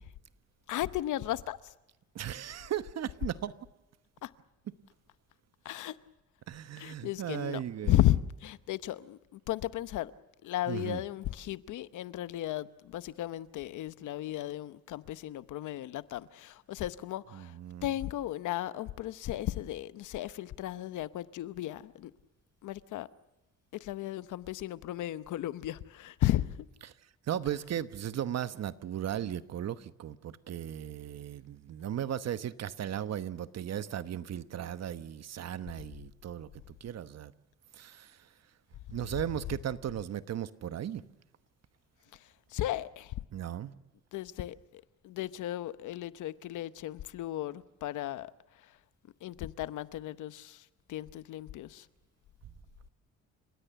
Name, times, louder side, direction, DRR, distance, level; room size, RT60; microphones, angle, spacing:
voice 1, 0.7-1.6 4.2-4.3 5.6-6.0 6.8-10.1 10.4-17.5 17.8-22.1 22.6-23.1 23.7-26.6 42.5-43.1 44.1-48.3 49.2-51.9, left 14 dB, 80° left, 0.9 m, -34 dB
voice 2, 2.1-3.5 6.5-8.0 10.7-11.0 17.3-17.9 26.8-26.9 27.3-36.5 36.8-37.3 37.7-38.2 38.9-41.0 43.3-43.7, right 10 dB, 60° right, 1.1 m, -36 dB
30.0 x 16.5 x 6.9 m
cardioid pair, 90°, 30 cm